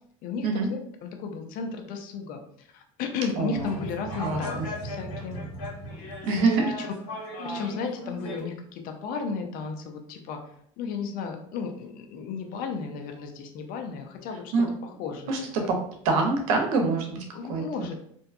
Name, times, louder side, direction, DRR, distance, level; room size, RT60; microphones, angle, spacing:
voice 1, 0.2-5.4 6.6-6.9 7.4-15.7 17.3-18.0, left 5 dB, 55° left, 4 dB, 0.5 m, -34 dB
voice 2, 3.4-3.7 4.2-4.7 6.2-6.7 14.5-14.7 15.3-15.8 16.0-17.6, right 3 dB, 75° right, 3 dB, 0.7 m, -25 dB
sound 1, 3.5-8.4, right 1 dB, 75° left, 1.4 m, -36 dB
2.6 x 2.2 x 2.4 m, 0.66 s
hypercardioid pair, 90°, 18 cm